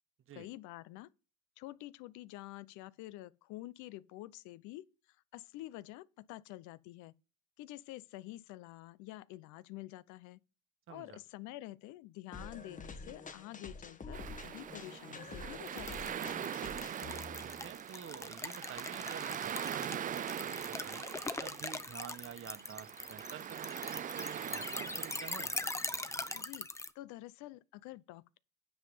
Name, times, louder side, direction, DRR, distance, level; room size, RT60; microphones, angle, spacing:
voice 1, 0.3-1.1 1.6-4.9 5.3-7.2 7.6-10.4 10.9-16.5 26.3-26.7 26.9-28.4, left 17 dB, 75° left, 0.7 m, -48 dB
voice 2, 10.9-11.2 17.4-19.9 20.4-21.0 21.4-25.5, right 9 dB, 45° right, 1.2 m, -49 dB
sound 1, 12.3-17.7, left 4 dB, 25° left, 1.3 m, -48 dB
sound 2, 14.1-26.4, right 9 dB, 30° right, 0.4 m, -42 dB
sound 3, 15.7-26.9, left 2 dB, 10° left, 0.7 m, -42 dB
9.6 x 5.6 x 5.6 m
supercardioid pair, 95°, 30 cm